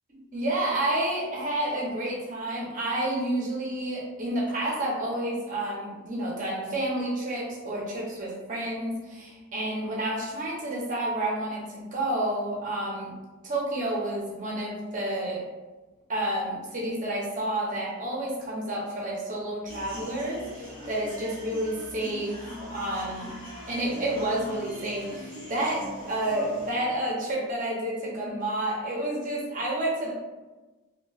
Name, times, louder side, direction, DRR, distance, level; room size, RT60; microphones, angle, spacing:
voice 1, 0.3-13.1 13.4-15.4 16.1-22.4 22.7-23.3 23.7-30.1, right 1 dB, 35° right, -4 dB, 0.6 m, -30 dB
sound 1, 19.6-26.7, left 1 dB, 20° left, 1.0 m, -41 dB
2.8 x 2.2 x 2.3 m, 1.2 s
head